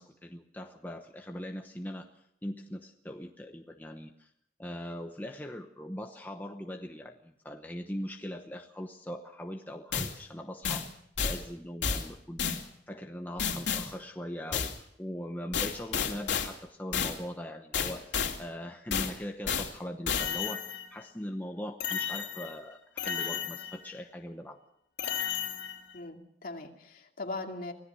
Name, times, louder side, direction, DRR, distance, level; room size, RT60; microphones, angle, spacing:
voice 1, 0.0-4.3 4.6-10.9 11.2-24.6, equal, 10° left, 3 dB, 1.0 m, -41 dB
sound 1, 9.9-10.1 10.6-10.9 11.2-11.4 11.8-12.1 12.4-12.6 13.4-13.9 14.5-14.8 15.5-16.5 16.9-17.2 17.7-18.4 18.9-19.1 19.5-19.7 20.1-21.0 21.8-22.5 23.0-23.9 25.0-25.9, left 7 dB, 85° left, 2.7 m, -32 dB
voice 2, 25.9-27.7, left 2 dB, 50° left, 2 dB, 2.6 m, -39 dB
25.0 x 17.0 x 6.3 m, 0.73 s
head